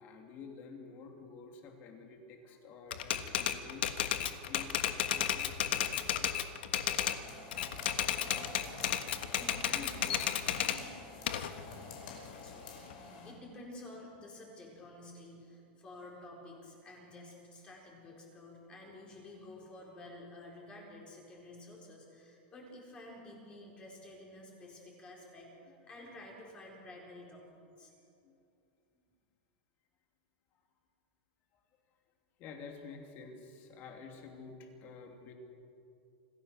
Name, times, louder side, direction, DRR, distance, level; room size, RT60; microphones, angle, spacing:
voice 1, 0.0-6.4 26.0-26.1 28.2-28.4 32.4-35.3, left 5 dB, 35° left, 3 dB, 2.9 m, -51 dB
Typewriter, 2.9-7.2 7.5-10.8 11.3-12.9, left 10 dB, 75° left, 1.4 m, -33 dB
sound 1, 7.1-13.3, left 4 dB, 55° left, 5.6 m, -49 dB
voice 2, 9.0-11.4 12.4-27.9, left 1 dB, 20° left, -1 dB, 4.5 m, -51 dB
27.0 x 15.0 x 6.6 m, 2.6 s
supercardioid pair, 160°, 6 cm